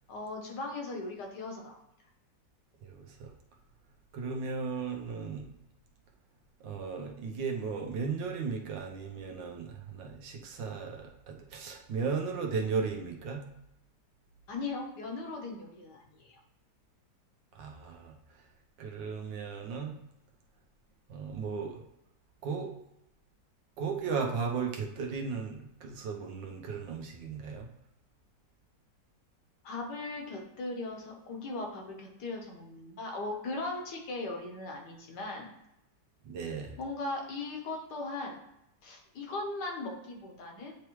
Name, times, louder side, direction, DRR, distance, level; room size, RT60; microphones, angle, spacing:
voice 1, 0.1-1.8 14.5-16.4 29.6-35.5 36.8-38.4 38.8-40.7, left 2 dB, 70° left, 2 dB, 1.6 m, -38 dB
voice 2, 2.8-3.3 4.1-5.5 6.6-13.4 17.5-18.2 18.8-19.9 21.1-21.8 22.4-22.7 23.8-27.7 36.2-36.7, right 5 dB, 90° right, 1 dB, 1.6 m, -36 dB
9.5 x 3.3 x 3.1 m, 0.83 s
omnidirectional pair, 1.9 m